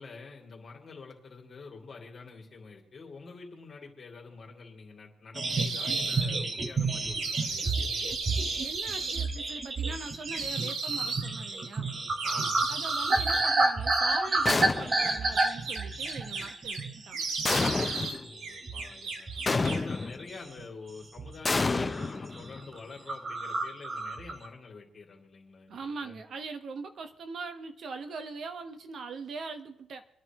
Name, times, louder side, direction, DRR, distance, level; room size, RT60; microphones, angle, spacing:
voice 1, 0.0-8.8 12.2-12.8 18.1-26.2, left 4 dB, 40° left, -1 dB, 3.0 m, -47 dB
sound 1, 5.3-17.1 17.4-17.6 18.1-19.6 19.9-20.7 21.2-21.4 21.7-22.1 22.4-22.5 22.7-22.8 23.1-24.5, right 2 dB, 35° right, 1.4 m, -30 dB
sound 2, 5.5-6.2 7.1-9.3 10.3-11.3 12.1-13.5 15.0-16.8 17.1-18.2 18.4-19.9, right 4 dB, 85° right, 2.1 m, -35 dB
voice 2, 8.6-11.9 12.7-17.2 25.7-30.0, right 4 dB, 55° right, 8 dB, 1.3 m, -41 dB
sound 3, 14.5-15.2 17.5-18.2 19.5-20.2 21.5-22.7, left 3 dB, 25° left, 0.7 m, -29 dB
27.5 x 9.8 x 3.1 m, 0.76 s
cardioid pair, 90°, 0 cm